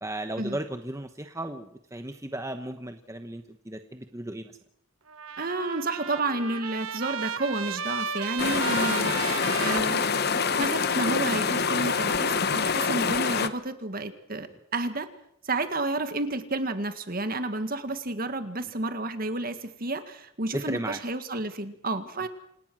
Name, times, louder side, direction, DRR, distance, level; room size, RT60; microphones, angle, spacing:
voice 1, 0.0-4.6 20.5-21.0, right 1 dB, 15° right, 7 dB, 1.1 m, -35 dB
Trumpet, 5.1-10.7, right 6 dB, 80° right, 1.3 m, -34 dB
voice 2, 5.4-14.5 14.7-15.1 15.4-22.3, right 2 dB, 45° right, 9 dB, 1.9 m, -31 dB
sound 1, 8.4-13.5, left 5 dB, 50° left, 1.1 m, -26 dB
27.5 x 18.5 x 6.3 m, 0.72 s
head